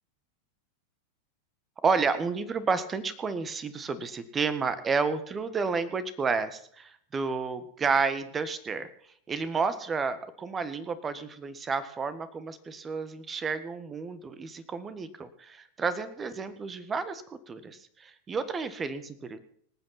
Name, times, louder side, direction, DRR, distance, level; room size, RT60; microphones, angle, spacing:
voice 1, 1.8-8.9 9.3-19.4, right 5 dB, 20° right, 13 dB, 1.6 m, -31 dB
25.5 x 9.2 x 4.2 m, 0.64 s
figure-of-eight pair, 90°, 0 cm